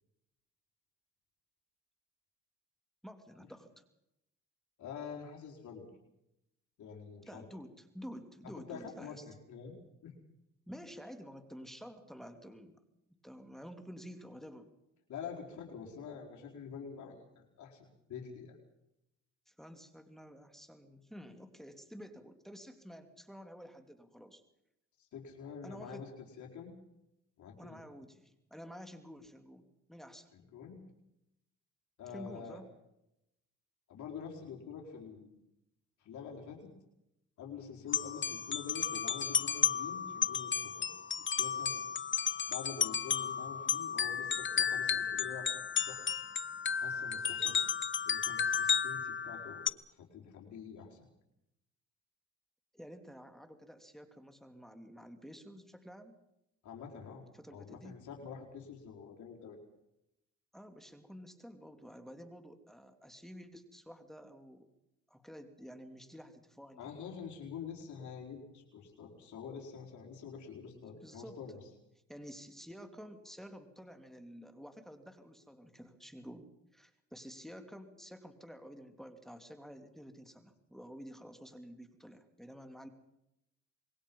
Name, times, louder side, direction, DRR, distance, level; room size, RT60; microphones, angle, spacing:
voice 1, 3.0-3.8 7.3-9.3 10.7-12.8 13.2-14.7 19.5-24.4 25.6-26.1 27.6-30.3 32.1-32.7 52.7-56.1 57.3-57.9 60.5-64.7 65.1-66.9 71.0-71.4 72.1-76.5 76.7-82.9, equal, ahead, 6 dB, 3.0 m, -50 dB
voice 2, 4.8-5.9 6.8-7.5 8.7-9.7 10.0-10.1 15.1-17.2 17.6-18.6 25.0-26.7 27.4-27.8 30.3-30.8 32.0-32.6 33.9-35.3 36.0-36.7 37.4-41.8 42.5-45.5 45.9-46.0 46.8-47.6 48.1-49.7 50.0-51.0 56.6-57.2 57.5-59.6 66.8-71.6, left 6 dB, 70° left, 0 dB, 4.7 m, -46 dB
sound 1, 37.9-49.7, left 7 dB, 40° left, 1.1 m, -33 dB
26.5 x 22.5 x 5.5 m, 0.84 s
cardioid pair, 90°, 30 cm